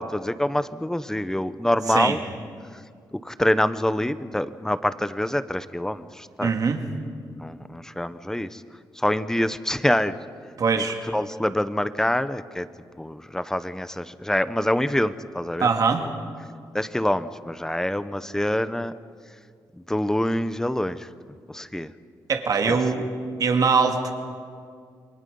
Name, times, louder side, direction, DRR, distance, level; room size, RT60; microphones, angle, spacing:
voice 1, 0.0-2.2 2.7-2.8 3.1-6.6 7.4-8.6 8.9-10.2 10.7-10.9 11.1-12.7 13.0-15.7 16.0-16.1 16.7-18.9 19.7-21.9 22.7-22.8, left 1 dB, 5° left, 13 dB, 0.8 m, -26 dB
voice 2, 6.4-6.8 10.6-11.0 15.6-16.1 22.3-23.1 23.4-24.1, right 5 dB, 55° right, 4 dB, 2.3 m, -22 dB
28.5 x 23.0 x 5.4 m, 2.1 s
cardioid pair, 110°, 8 cm